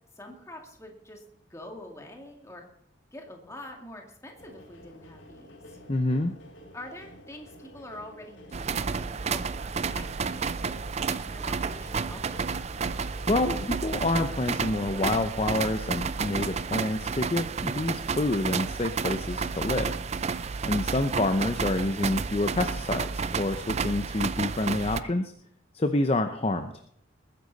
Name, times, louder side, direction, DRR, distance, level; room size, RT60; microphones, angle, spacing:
voice 1, 0.1-1.2 1.5-2.6 3.1-5.8 6.7-12.4, left 1 dB, 15° left, 2 dB, 2.2 m, -45 dB
sound 1, 4.4-22.7, left 1 dB, 80° left, 3.2 m, -53 dB
voice 2, 5.9-6.3 12.9-20.0 20.7-25.3 25.7-26.7, left 2 dB, 30° left, 7 dB, 0.7 m, -28 dB
sound 2, 8.5-25.0, right 5 dB, 35° right, 0.4 m, -31 dB
20.5 x 10.0 x 4.1 m, 0.68 s
head